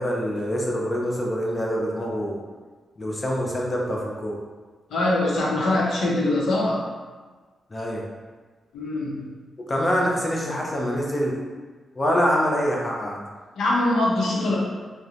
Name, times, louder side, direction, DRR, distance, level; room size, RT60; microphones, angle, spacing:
voice 1, 0.0-2.4 3.0-4.4 7.7-8.0 9.7-11.4 12.0-13.2, equal, 25° left, -2 dB, 0.5 m, -25 dB
voice 2, 4.9-6.9 8.7-9.2 13.6-14.6, left 2 dB, 85° left, -5 dB, 0.7 m, -23 dB
2.9 x 2.1 x 2.4 m, 1.4 s
cardioid pair, 100°, 0 cm